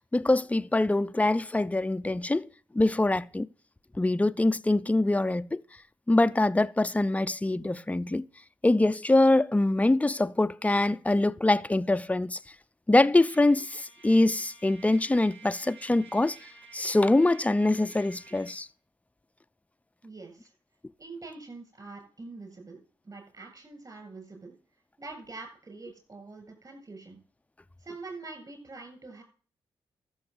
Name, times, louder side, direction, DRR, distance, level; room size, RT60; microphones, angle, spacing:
voice 1, 0.0-2.5 2.7-3.5 4.0-5.6 6.1-8.2 8.6-12.4 12.9-16.4 16.7-18.7, left 2 dB, 15° left, 0.6 m, -24 dB
Trumpet, 13.3-18.6, right 4 dB, 70° right, 3.0 m, -52 dB
voice 2, 20.0-20.5 21.0-24.5 25.0-27.2 27.8-29.2, right 3 dB, 35° right, 8.0 m, -44 dB
13.5 x 7.1 x 6.5 m
supercardioid pair, 50°, 10 cm